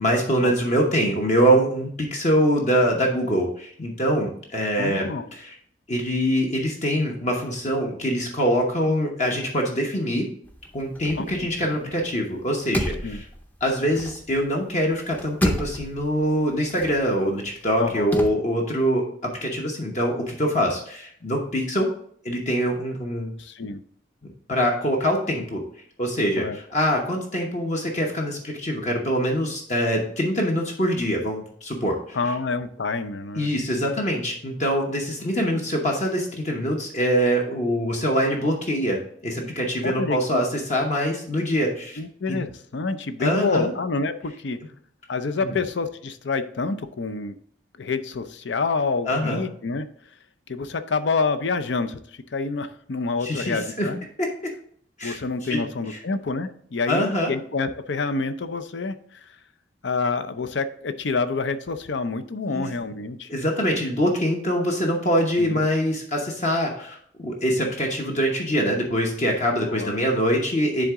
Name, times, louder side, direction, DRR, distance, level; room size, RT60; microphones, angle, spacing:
voice 1, 0.0-5.5 5.9-10.2 10.7-13.2 13.6-21.9 22.2-23.3 24.2-25.6 26.0-32.2 33.4-39.0 39.2-42.0 42.3-42.4 43.2-43.7 45.4-45.6 49.0-49.4 53.2-53.9 54.2-54.5 55.0-55.2 55.5-55.6 55.9-56.0 56.9-57.3 62.5-62.7 63.3-70.9, equal, 35° left, 0 dB, 0.9 m, -24 dB
voice 2, 4.8-5.3 11.2-11.9 13.0-13.2 17.8-18.2 23.4-23.8 26.4-26.6 32.1-33.5 39.8-40.2 42.0-44.6 45.1-47.3 47.8-49.9 50.5-54.0 55.0-59.0 59.8-63.3 65.4-65.6 69.6-70.1, left 4 dB, 70° left, 10 dB, 0.5 m, -28 dB
sound 1, 10.4-12.1 12.4-14.6 14.9-18.3, equal, 10° left, 0.6 m, -31 dB
10.0 x 3.7 x 3.6 m, 0.62 s
head